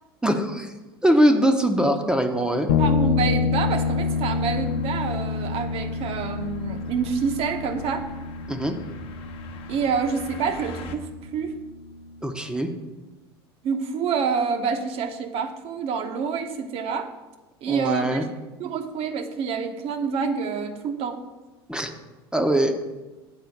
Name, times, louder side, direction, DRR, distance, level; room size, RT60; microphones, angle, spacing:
voice 1, 0.2-0.7 1.0-2.7 8.5-8.7 12.2-12.7 17.7-18.3 21.7-21.9 22.3-22.7, right 1 dB, 5° right, 5 dB, 0.8 m, -22 dB
sound 1, 2.7-12.2, left 5 dB, 65° left, 0.6 m, -28 dB
voice 2, 2.8-8.0 9.7-11.5 13.6-17.1 17.6-18.2 18.6-21.2, right 5 dB, 45° right, 7 dB, 1.0 m, -27 dB
sound 2, 3.7-11.0, left 4 dB, 45° left, 1.1 m, -44 dB
8.0 x 4.2 x 7.0 m, 1.1 s
hypercardioid pair, 85°, 14 cm